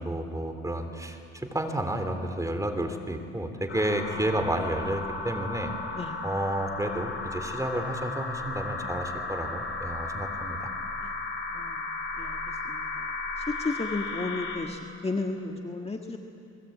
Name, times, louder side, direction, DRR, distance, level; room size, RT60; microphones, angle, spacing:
voice 1, 0.0-5.7 6.2-10.7, right 1 dB, 10° right, 6 dB, 3.2 m, -31 dB
sound 1, 3.7-14.6, left 3 dB, 45° left, 5.9 m, -35 dB
voice 2, 13.6-16.2, left 3 dB, 20° left, 2 dB, 1.7 m, -33 dB
29.5 x 21.5 x 8.7 m, 2.6 s
cardioid pair, 90°, 30 cm